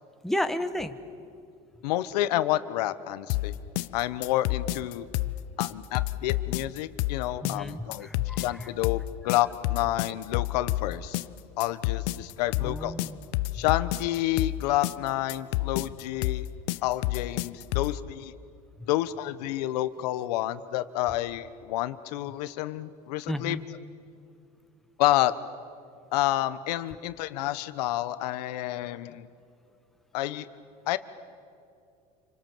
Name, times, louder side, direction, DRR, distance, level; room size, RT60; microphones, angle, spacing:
voice 1, 0.2-1.0 7.4-8.7 12.6-13.3 18.8-18.9 23.3-23.6, left 1 dB, ahead, 7 dB, 1.3 m, -32 dB
voice 2, 1.8-3.5 3.9-5.0 5.6-8.1 8.4-11.2 11.6-12.9 13.5-16.5 16.8-18.3 18.9-23.6 25.0-25.3 26.1-29.3 30.1-30.5 30.9-31.0, left 15 dB, 85° left, 13 dB, 1.1 m, -29 dB
sound 1, 3.3-18.0, left 18 dB, 70° left, 0.7 m, -29 dB
27.5 x 26.0 x 7.5 m, 2.5 s
supercardioid pair, 115°, 20 cm